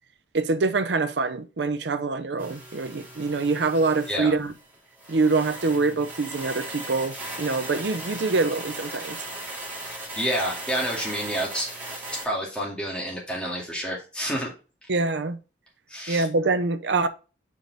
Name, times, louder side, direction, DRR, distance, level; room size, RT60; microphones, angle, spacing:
voice 1, 0.3-4.5 5.1-9.2 14.9-15.4 16.1-17.1, right 3 dB, 80° right, 0.6 m, -25 dB
sound 1, 2.4-12.3, right 1 dB, 10° right, 3.2 m, -38 dB
voice 2, 10.1-11.7 12.2-14.5 15.9-16.3, equal, 5° left, 2.2 m, -29 dB
5.3 x 4.9 x 4.0 m
head